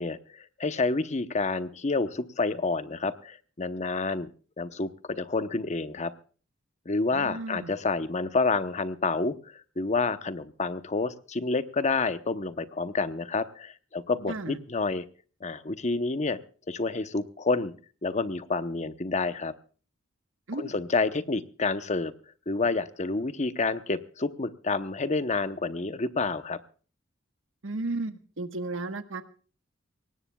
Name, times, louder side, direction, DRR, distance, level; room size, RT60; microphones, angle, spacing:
voice 1, 0.0-4.3 4.6-6.1 6.9-9.3 9.8-15.0 15.4-16.4 16.7-17.7 18.0-19.5 20.5-22.1 22.5-26.6, left 3 dB, 35° left, 11 dB, 0.9 m, -29 dB
voice 2, 7.1-7.7 14.3-14.6 20.5-20.7 27.6-29.2, right 2 dB, 80° right, 9 dB, 1.3 m, -34 dB
24.0 x 18.5 x 2.3 m, 0.39 s
head